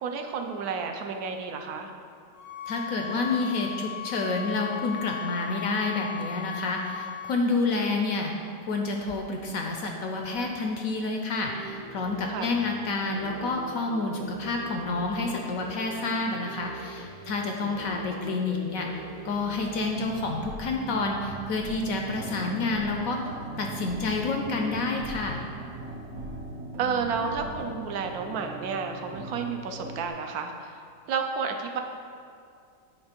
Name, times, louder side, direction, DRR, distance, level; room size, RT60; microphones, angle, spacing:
voice 1, 0.0-1.9 7.7-7.9 12.3-12.5 26.8-30.8 31.1-31.8, right 5 dB, 70° right, 5 dB, 1.0 m, -31 dB
sound 1, 2.3-7.4, left 9 dB, 90° left, 1.6 m, -37 dB
voice 2, 2.7-8.3 8.6-23.2 23.6-25.4, left 3 dB, 70° left, 2 dB, 0.9 m, -29 dB
sound 2, 11.5-27.8, right 4 dB, 85° right, 1.3 m, -42 dB
sound 3, 22.1-30.1, right 1 dB, 50° right, 1.1 m, -42 dB
8.0 x 3.5 x 5.1 m, 2.3 s
omnidirectional pair, 1.8 m